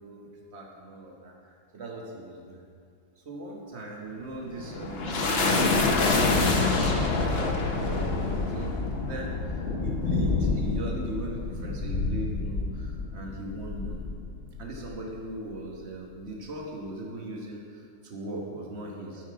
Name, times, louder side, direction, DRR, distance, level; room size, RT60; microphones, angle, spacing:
voice 1, 0.0-2.6 3.2-8.7 9.0-14.0 14.6-19.3, right 2 dB, 35° right, -1 dB, 1.4 m, -39 dB
sound 1, 4.2-15.0, left 3 dB, 50° left, 0.7 m, -27 dB
12.5 x 5.7 x 4.7 m, 2.3 s
omnidirectional pair, 2.1 m